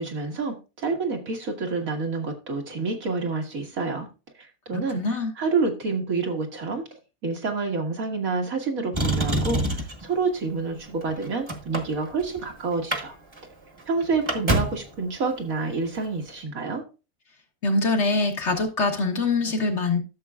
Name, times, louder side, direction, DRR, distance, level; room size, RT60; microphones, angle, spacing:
voice 1, 0.0-4.1 4.4-6.8 7.2-13.2 13.9-16.8, right 4 dB, 75° right, 2.2 m, -28 dB
voice 2, 4.9-5.3 17.6-20.0, left 3 dB, 55° left, 1.6 m, -23 dB
Motor vehicle (road), 8.9-10.1 10.9-12.4 12.7-13.0 13.3-13.4 13.8-14.9 15.9-16.1, right 1 dB, 20° right, 1.2 m, -26 dB
13.0 x 6.8 x 2.4 m
omnidirectional pair, 1.5 m